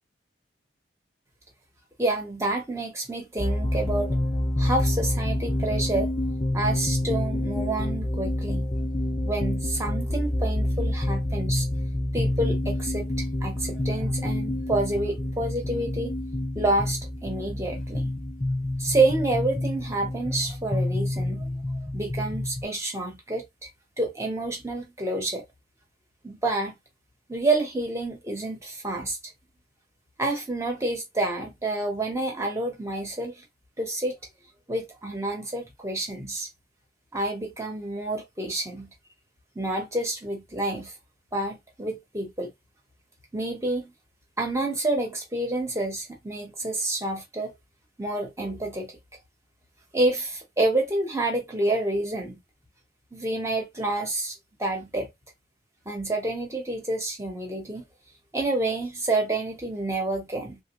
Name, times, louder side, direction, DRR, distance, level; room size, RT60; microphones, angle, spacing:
voice 1, 2.0-4.2 4.6-6.1 6.5-8.7 9.2-11.6 12.1-16.1 16.5-18.2 18.8-21.5 21.9-23.4 24.0-25.4 26.2-26.7 27.3-29.2 30.2-33.4 33.8-34.2 34.7-36.5 37.1-38.9 39.5-40.9 41.3-42.5 43.3-43.8 44.4-47.5 48.0-48.9 49.9-52.4 53.1-55.1 55.8-57.8 58.3-60.6, right 2 dB, 15° right, 1.0 m, -28 dB
sound 1, 3.4-22.6, left 1 dB, 20° left, 0.4 m, -28 dB
3.4 x 2.2 x 3.0 m
head